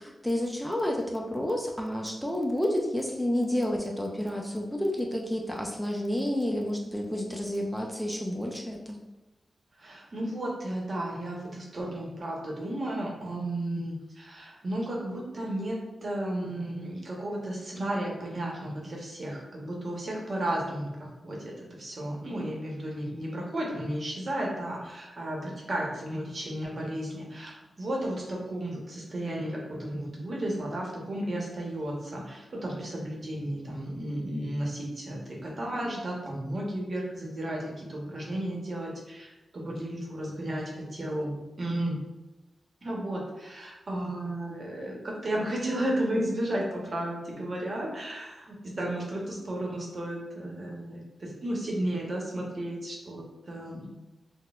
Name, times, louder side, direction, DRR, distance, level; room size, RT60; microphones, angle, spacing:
voice 1, 0.0-9.0, left 1 dB, 5° left, 0 dB, 0.5 m, -30 dB
voice 2, 9.8-42.0 42.8-53.9, right 1 dB, 55° right, -2 dB, 0.9 m, -33 dB
3.9 x 2.2 x 2.4 m, 1.1 s
cardioid pair, 50°, 0 cm